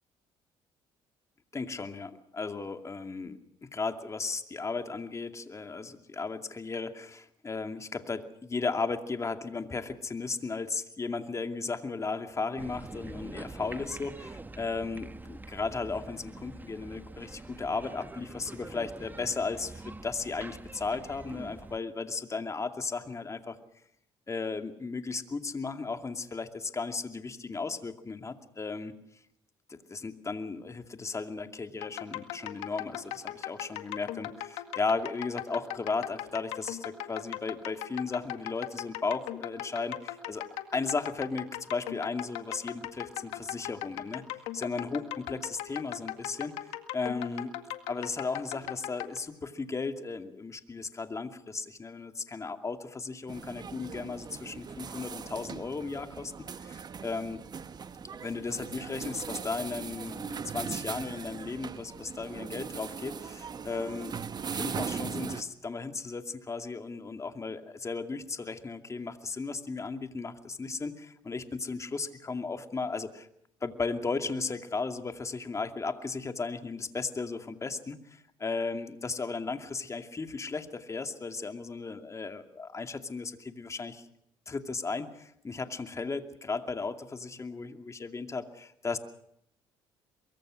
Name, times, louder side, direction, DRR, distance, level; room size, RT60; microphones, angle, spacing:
voice 1, 1.5-23.6 24.3-28.9 29.7-40.5 40.7-44.3 44.5-47.5 47.9-56.3 56.6-57.4 58.2-64.2 64.5-73.3 73.6-84.1 84.5-89.0, left 4 dB, 30° left, 7 dB, 2.4 m, -35 dB
sound 1, 12.6-21.8, right 2 dB, 15° right, 1.1 m, -45 dB
sound 2, 31.8-49.2, left 13 dB, 80° left, 1.9 m, -39 dB
sound 3, 53.3-65.4, right 6 dB, 40° right, 1.3 m, -39 dB
23.0 x 23.0 x 6.4 m, 0.73 s
supercardioid pair, 70°, 11 cm